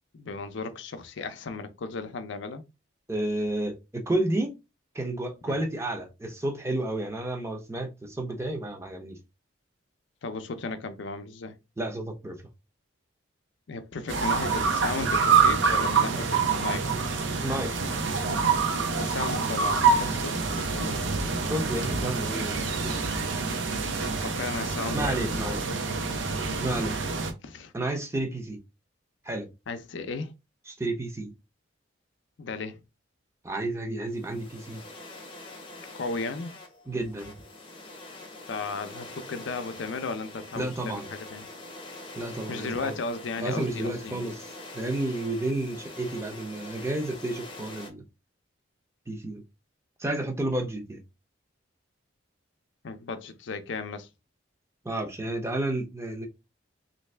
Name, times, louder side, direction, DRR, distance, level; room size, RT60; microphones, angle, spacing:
voice 1, 0.1-2.6 5.5-5.6 10.2-11.6 13.7-16.9 19.0-21.0 24.1-25.5 27.4-27.7 29.7-30.3 32.4-32.8 35.9-36.5 38.5-41.5 42.5-44.2 52.8-54.1, left 4 dB, 70° left, 0.5 m, -35 dB
voice 2, 3.1-4.5 4.9-9.2 11.8-12.4 17.4-17.7 21.5-22.6 22.8-23.0 24.9-25.7 26.6-27.0 27.7-28.6 29.2-29.5 30.7-31.3 33.4-34.8 36.9-37.3 40.6-41.1 42.2-43.0 43.4-44.4 44.7-48.0 49.1-49.4 50.0-51.0 54.8-56.3, right 1 dB, 15° right, 0.6 m, -31 dB
sound 1, 14.1-27.3, right 5 dB, 70° right, 0.6 m, -26 dB
sound 2, 34.1-47.9, left 2 dB, 25° left, 0.7 m, -44 dB
3.2 x 2.6 x 3.2 m
head